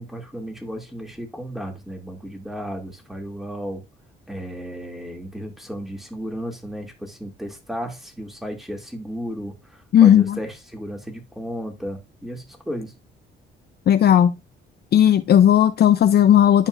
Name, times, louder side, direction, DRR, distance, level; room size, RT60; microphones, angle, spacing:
voice 1, 0.0-3.8 4.3-12.9, equal, ahead, 2.5 m, -34 dB
voice 2, 9.9-10.4 13.9-14.4 14.9-16.7, left 10 dB, 55° left, 0.6 m, -15 dB
11.5 x 4.5 x 2.5 m
cardioid pair, 90°, 20 cm